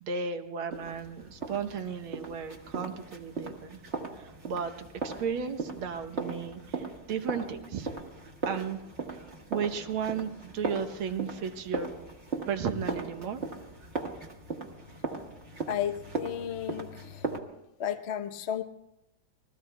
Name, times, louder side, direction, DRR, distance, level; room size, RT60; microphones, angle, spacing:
voice 1, 0.0-3.8 4.2-7.9 8.5-8.8 9.1-9.3 9.5-11.9 12.5-13.4, right 6 dB, 75° right, 8 dB, 1.8 m, -34 dB
sound 1, 0.7-17.4, right 3 dB, 35° right, 1.6 m, -38 dB
voice 2, 15.7-17.3 17.8-18.6, left 9 dB, 55° left, 7 dB, 0.7 m, -33 dB
29.5 x 21.0 x 2.3 m, 0.88 s
omnidirectional pair, 2.3 m